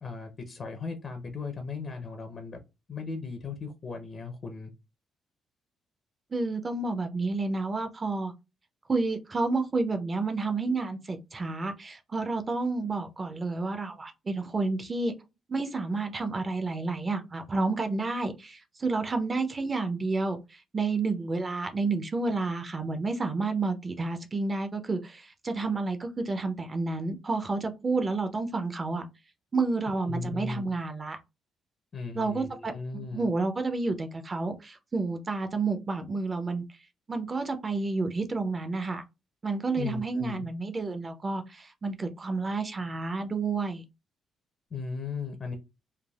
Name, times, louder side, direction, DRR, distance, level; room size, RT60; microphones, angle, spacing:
voice 1, 0.0-2.6 2.9-4.7 29.9-30.7 31.9-33.3 39.8-40.5 44.7-45.6, left 4 dB, 35° left, 0.5 m, -37 dB
voice 2, 6.3-8.3 8.9-15.1 15.5-29.0 29.5-31.2 32.1-36.6 37.1-39.0 39.4-43.8, right 3 dB, 25° right, 0.4 m, -30 dB
3.2 x 2.2 x 2.2 m
cardioid pair, 140°, 0 cm